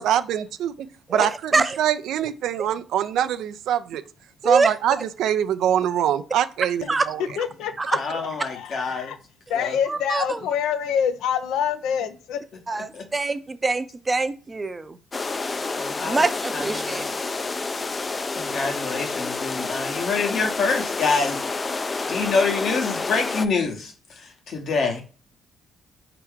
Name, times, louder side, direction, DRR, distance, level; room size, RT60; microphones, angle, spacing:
voice 1, 0.0-4.0 4.4-7.2, right 10 dB, 80° right, 10 dB, 0.4 m, -24 dB
voice 2, 6.8-9.2 9.5-12.4, left 8 dB, 85° left, 10 dB, 0.5 m, -27 dB
voice 3, 8.0-9.1 9.6-9.7 12.9-13.0 15.8-16.2 16.5-17.1 18.4-21.4 22.1-25.0, left 4 dB, 65° left, 4 dB, 1.1 m, -26 dB
voice 4, 9.9-10.4 12.7-12.9 13.1-15.0 16.0-17.0, right 3 dB, 25° right, 11 dB, 0.5 m, -24 dB
sound 1, 15.1-23.5, left 3 dB, 30° left, 0.3 m, -29 dB
4.5 x 2.9 x 3.6 m, 0.37 s
cardioid pair, 90°, 0 cm